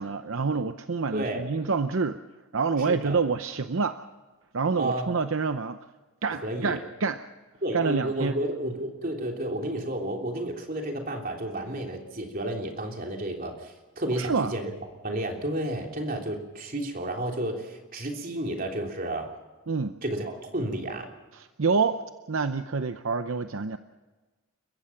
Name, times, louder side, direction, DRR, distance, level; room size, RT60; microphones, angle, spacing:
voice 1, 0.0-2.2 2.5-4.0 4.5-5.8 6.2-7.2 7.7-8.4 14.1-14.5 19.7-20.0 21.3-22.0 22.3-23.8, right 4 dB, 70° right, 10 dB, 0.7 m, -27 dB
voice 2, 1.1-1.5 2.8-3.2 4.8-5.1 6.3-6.8 7.6-14.7 15.0-19.3 20.0-21.1, right 1 dB, 40° right, 2 dB, 3.3 m, -31 dB
29.5 x 15.0 x 5.9 m, 1.2 s
head